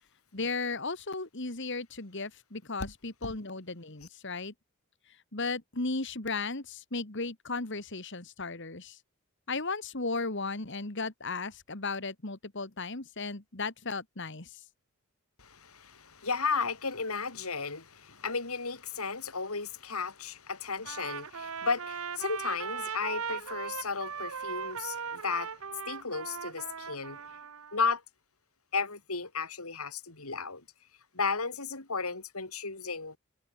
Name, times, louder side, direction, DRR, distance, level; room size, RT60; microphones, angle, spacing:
voice 1, 0.3-4.5 5.3-9.0 9.5-14.6, left 3 dB, 55° left, 2.1 m, -35 dB
voice 2, 15.4-25.6 25.9-27.2 27.7-28.0 28.7-30.6 31.1-33.2, left 4 dB, 80° left, 4.3 m, -34 dB
Trumpet, 20.8-27.8, right 6 dB, 70° right, 1.1 m, -39 dB
head